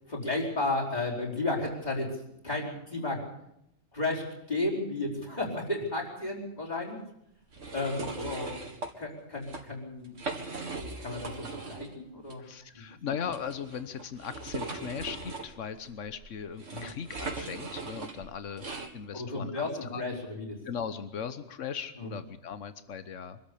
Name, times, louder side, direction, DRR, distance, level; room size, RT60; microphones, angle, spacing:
voice 1, 0.0-2.1 2.4-3.2 3.9-7.0 7.7-8.6 9.0-10.1 11.0-12.4 16.7-16.8 19.1-20.6 22.0-22.1, left 2 dB, 35° left, -3 dB, 5.1 m, -33 dB
sound 1, 7.5-8.9 9.3-9.6 10.0-11.9 12.3-12.4 13.3-18.9, right 3 dB, 90° right, 2.4 m, -39 dB
voice 2, 12.4-18.7 18.9-20.0 20.6-23.4, left 7 dB, 85° left, 11 dB, 1.4 m, -38 dB
24.5 x 13.0 x 8.6 m, 0.80 s
omnidirectional pair, 1.2 m